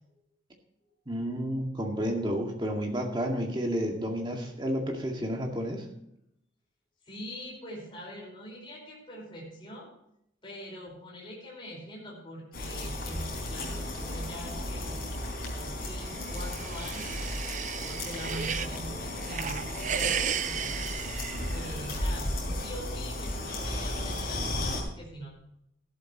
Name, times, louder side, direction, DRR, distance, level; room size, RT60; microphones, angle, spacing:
voice 1, 1.1-5.8, equal, 25° right, 1 dB, 2.1 m, -31 dB
voice 2, 7.0-9.9 10.4-15.0 15.5-17.2 17.8-20.1 20.4-21.2 21.5-25.3, equal, 25° left, -3 dB, 4.8 m, -43 dB
sound 1, 12.5-24.8, left 1 dB, 50° left, 4.5 m, -34 dB
sound 2, 16.1-18.8 19.2-22.0, right 8 dB, 40° right, 0.5 m, -34 dB
14.0 x 12.5 x 3.0 m, 0.77 s
head